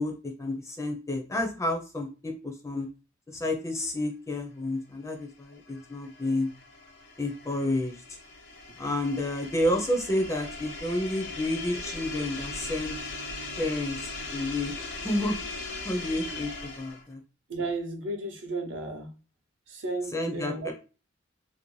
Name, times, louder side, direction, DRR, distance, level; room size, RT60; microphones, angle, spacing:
voice 1, 0.0-2.9 3.3-6.5 7.2-8.2 8.8-13.0 13.6-14.7 15.0-15.4 15.8-17.2 20.1-20.7, left 1 dB, 15° left, 2 dB, 0.4 m, -30 dB
sound 1, 5.2-17.1, left 3 dB, 60° left, 0.6 m, -39 dB
voice 2, 17.5-19.1 19.7-20.7, right 2 dB, 75° right, 3 dB, 0.7 m, -33 dB
2.6 x 2.1 x 3.1 m, 0.34 s
head